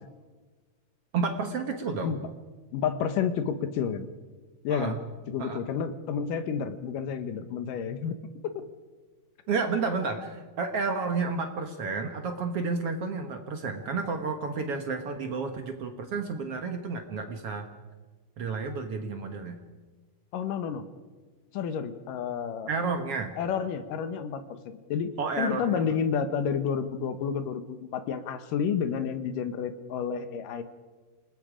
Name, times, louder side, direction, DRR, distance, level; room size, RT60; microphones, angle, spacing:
voice 1, 1.1-2.1 4.7-5.0 5.4-5.6 9.5-17.7 18.4-19.6 22.7-23.3 25.2-25.8, right 4 dB, 55° right, 5 dB, 1.8 m, -31 dB
voice 2, 2.7-4.1 4.6-5.0 5.3-8.2 8.4-8.6 20.3-20.8 21.5-22.7 23.4-25.1 25.4-30.6, left 7 dB, 75° left, 10 dB, 2.6 m, -30 dB
28.0 x 19.0 x 5.1 m, 1.3 s
omnidirectional pair, 3.9 m